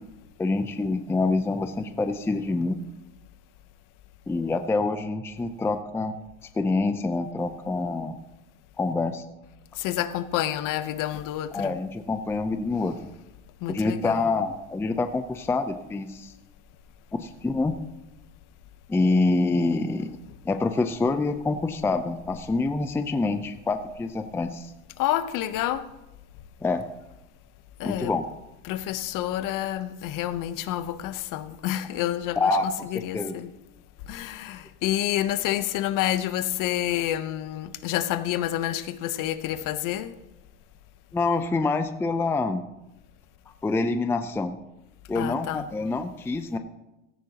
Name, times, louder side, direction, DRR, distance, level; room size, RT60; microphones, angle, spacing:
voice 1, 0.4-2.8 4.3-6.1 6.5-8.2 8.8-9.2 11.5-12.9 13.7-16.3 17.1-17.7 18.9-20.1 20.4-24.7 26.6-26.8 27.8-28.2 32.4-33.3 41.1-42.7 43.6-44.6 45.1-46.6, left 3 dB, 5° left, 0.5 m, -26 dB
voice 2, 9.8-11.8 13.6-14.3 25.0-25.9 27.8-28.1 28.6-33.5 34.1-40.1 45.1-45.6, left 13 dB, 50° left, 0.9 m, -29 dB
16.5 x 13.0 x 2.9 m
supercardioid pair, 115°, 42 cm